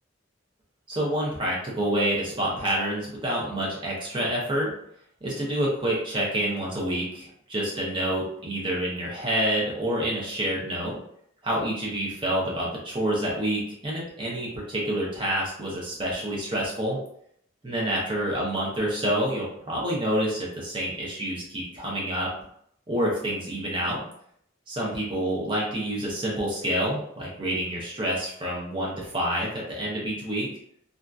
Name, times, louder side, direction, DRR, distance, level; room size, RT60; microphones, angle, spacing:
voice 1, 0.9-4.7 5.2-10.9 11.4-17.0 17.6-22.3 22.9-24.0 24.7-30.5, right 1 dB, 25° right, -4 dB, 0.8 m, -28 dB
2.7 x 2.5 x 2.3 m, 0.69 s
head